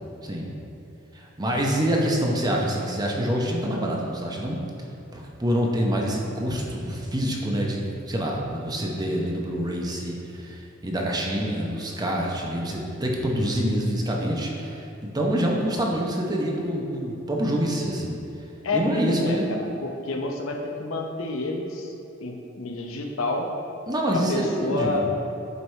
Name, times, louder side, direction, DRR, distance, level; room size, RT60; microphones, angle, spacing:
voice 1, 0.2-0.5 1.1-4.6 5.1-18.2 18.7-19.5 23.9-25.0, equal, 20° right, -1 dB, 0.8 m, -26 dB
voice 2, 18.6-21.9 22.2-23.5 24.1-25.0, left 2 dB, 90° left, 2 dB, 0.8 m, -29 dB
8.0 x 4.7 x 3.2 m, 3.0 s
head